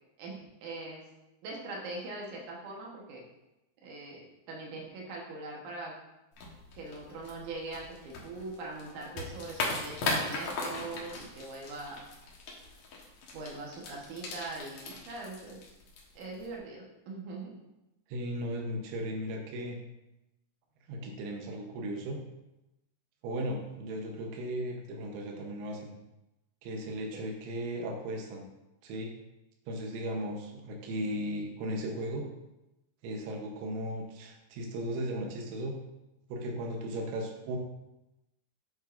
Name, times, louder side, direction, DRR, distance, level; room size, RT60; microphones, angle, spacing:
voice 1, 0.2-1.1 1.4-3.2 3.8-6.0 6.8-12.0 13.3-15.6 16.2-17.6 27.1-27.2, right 2 dB, 75° right, -2 dB, 1.8 m, -42 dB
sound 1, 6.3-16.6, left 3 dB, 80° left, 1.6 m, -39 dB
voice 2, 18.1-19.8 20.9-22.2 23.2-25.9 26.6-28.5 28.8-29.1 29.7-32.3 33.0-35.8 36.3-37.6, right 1 dB, 90° right, 1 dB, 3.5 m, -36 dB
8.8 x 7.9 x 2.5 m, 0.95 s
omnidirectional pair, 5.3 m